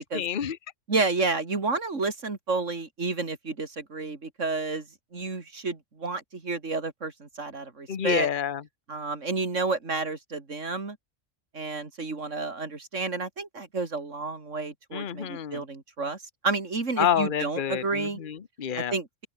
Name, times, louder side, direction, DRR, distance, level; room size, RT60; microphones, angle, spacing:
voice 1, 0.1-0.6 7.9-8.6 14.9-15.6 17.0-18.9, left 9 dB, 45° left, 1.1 m, -28 dB
voice 2, 0.9-4.9 5.1-8.3 8.9-11.0 11.5-16.2 16.4-18.2 18.8-19.3, right 3 dB, 80° right, 3.4 m, -30 dB
open air
omnidirectional pair, 1.3 m